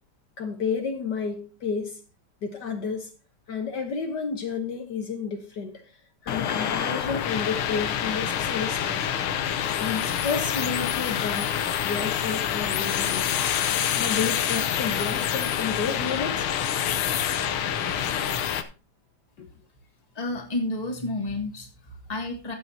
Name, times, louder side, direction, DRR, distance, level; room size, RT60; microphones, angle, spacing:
voice 1, 0.4-2.0 2.4-3.1 3.5-5.8 6.2-9.1 9.8-11.5 11.8-16.5 19.4-19.5, left 5 dB, 60° left, 1.7 m, -31 dB
sound 1, 6.3-18.6, left 9 dB, 90° left, 1.7 m, -27 dB
voice 2, 20.1-22.5, left 2 dB, 20° left, 1.8 m, -31 dB
14.5 x 8.3 x 2.8 m
omnidirectional pair, 2.2 m